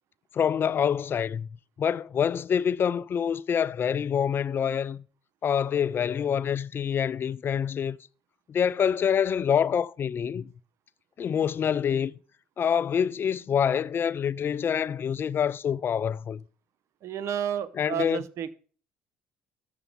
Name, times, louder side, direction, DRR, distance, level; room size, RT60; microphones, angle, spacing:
voice 1, 0.3-1.5 1.8-5.0 5.4-8.0 8.5-10.5 11.2-12.2 12.6-16.4 17.8-18.2, left 8 dB, 45° left, 0.4 m, -26 dB
voice 2, 17.0-18.5, right 9 dB, 60° right, 0.8 m, -31 dB
6.9 x 6.8 x 6.9 m
supercardioid pair, 70°, 5 cm